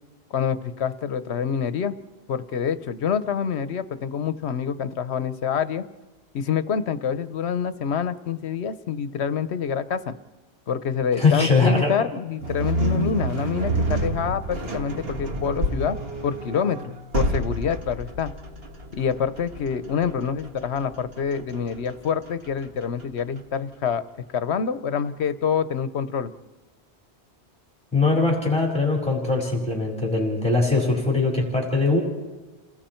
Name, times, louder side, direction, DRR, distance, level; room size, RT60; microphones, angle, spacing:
voice 1, 0.3-1.9 2.3-5.8 6.3-10.1 10.7-16.0 16.2-18.3 18.9-24.0 24.3-26.3, left 7 dB, 80° left, 12 dB, 1.1 m, -26 dB
voice 2, 11.2-12.0 27.9-32.0, left 3 dB, 5° left, -2 dB, 4.2 m, -21 dB
sound 1, 12.4-23.6, right 1 dB, 65° right, 1.9 m, -29 dB
30.0 x 19.5 x 4.5 m, 1.2 s
omnidirectional pair, 1.1 m